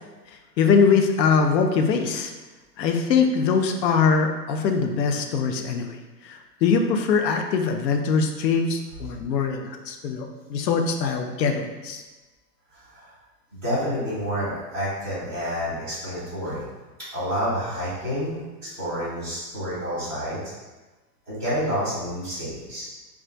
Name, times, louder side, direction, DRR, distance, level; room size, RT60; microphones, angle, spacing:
voice 1, 0.6-2.3 2.8-6.0 6.2-12.0, left 5 dB, 80° left, 5 dB, 0.6 m, -22 dB
voice 2, 12.7-13.1 13.5-16.6 17.1-20.4 21.3-22.9, equal, 5° left, -17 dB, 0.7 m, -29 dB
2.4 x 2.2 x 3.8 m, 1.2 s
hypercardioid pair, 170°, 49 cm